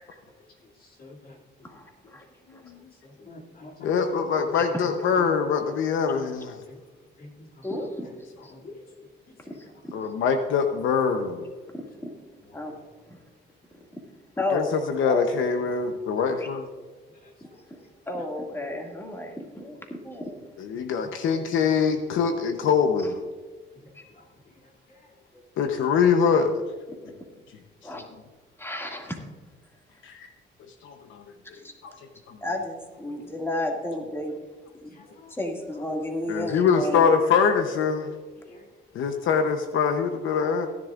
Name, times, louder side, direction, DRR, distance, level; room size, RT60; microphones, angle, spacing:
voice 1, 0.8-1.4 3.0-4.3 5.2-5.3 6.7-6.8 7.2-7.6 8.5-8.8 9.5-9.6 12.5-12.6 17.2-17.3 24.2-24.3 24.9-25.0 34.9-35.3 38.4-38.7, left 2 dB, 50° left, -2 dB, 2.8 m, -47 dB
voice 2, 1.6-2.2 4.6-4.7 7.6-8.1 8.4-8.5 9.5-10.0 11.7-11.8 12.5-12.7 14.4-14.7 15.0-15.2 17.7-17.8 18.1-20.4 23.9-24.0 25.3-25.4 26.9-27.2 27.8-28.0 28.6-29.2 31.5-31.7 32.4-34.4 34.8-37.1, left 1 dB, 10° left, 1 dB, 2.2 m, -32 dB
voice 3, 3.8-6.6 9.9-11.5 14.5-16.7 20.6-23.2 25.6-26.6 27.0-27.1 30.0-30.3 30.8-31.2 31.8-31.9 32.3-32.4 36.3-38.1 38.9-40.7, left 6 dB, 80° left, 6 dB, 0.9 m, -24 dB
17.0 x 10.5 x 2.5 m, 1.3 s
cardioid pair, 90°, 20 cm